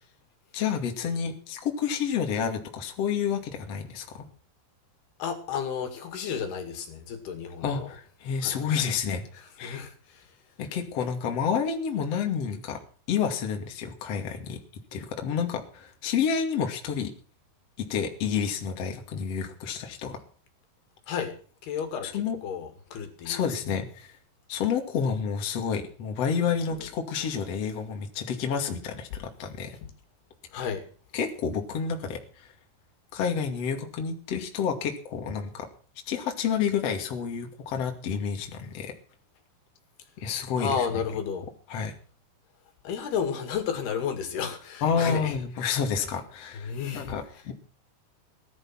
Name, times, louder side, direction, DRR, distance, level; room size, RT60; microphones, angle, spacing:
voice 1, 0.5-4.2 7.6-9.2 9.6-9.8 10.6-12.8 13.1-14.6 14.9-17.1 17.9-20.2 22.0-22.4 23.2-24.2 24.5-29.8 31.1-32.5 33.1-35.7 36.1-38.9 40.2-40.8 41.7-41.9 44.8-47.5, left 7 dB, 45° left, 3 dB, 3.0 m, -29 dB
voice 2, 5.2-7.9 8.4-8.6 9.3-10.3 21.1-21.4 21.6-23.8 26.8-26.9 30.5-30.9 40.6-41.5 42.8-45.4 46.6-47.4, left 7 dB, 70° left, 7 dB, 4.1 m, -32 dB
19.0 x 11.0 x 6.0 m, 0.41 s
omnidirectional pair, 4.8 m